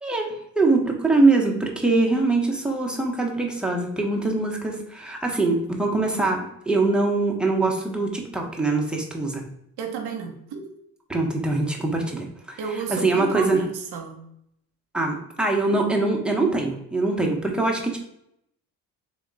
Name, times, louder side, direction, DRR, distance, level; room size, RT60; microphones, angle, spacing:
voice 1, 0.6-9.4 11.1-12.6 12.9-13.6 14.9-18.0, right 3 dB, ahead, 0 dB, 1.0 m, -23 dB
voice 2, 9.8-10.6 12.6-14.2, right 6 dB, 70° right, 3 dB, 0.9 m, -32 dB
3.5 x 2.9 x 3.9 m, 0.76 s
supercardioid pair, 70°, 40 cm